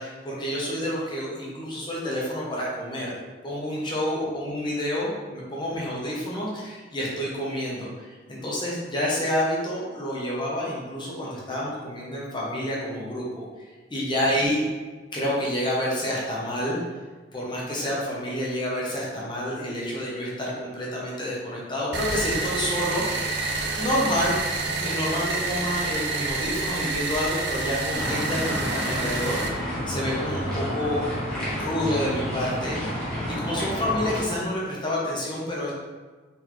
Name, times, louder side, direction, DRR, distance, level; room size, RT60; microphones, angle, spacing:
voice 1, 0.0-3.2 3.4-14.6 15.1-16.8 17.3-23.0 23.7-31.0 31.5-35.7, equal, 25° left, -5 dB, 0.8 m, -29 dB
sound 1, 21.9-29.5, right 3 dB, 60° right, 0.5 m, -28 dB
sound 2, 27.9-34.2, equal, 5° left, 1.1 m, -30 dB
3.8 x 3.4 x 3.0 m, 1.3 s
head